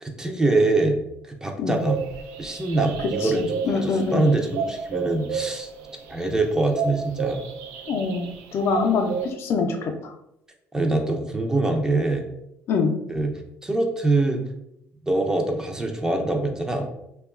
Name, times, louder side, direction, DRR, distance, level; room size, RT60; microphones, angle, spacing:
voice 1, 0.0-0.9 1.3-2.0 2.4-5.7 6.1-7.4 10.7-12.2 13.1-13.3 13.6-14.4 15.1-16.9, right 2 dB, 10° right, 3 dB, 0.4 m, -24 dB
sound 1, 1.7-9.3, right 6 dB, 80° right, 0.3 m, -32 dB
voice 2, 3.2-4.3 7.9-10.1 12.7-12.9, left 4 dB, 60° left, 4 dB, 0.4 m, -25 dB
2.8 x 2.2 x 2.3 m, 0.81 s
supercardioid pair, 90°, 5 cm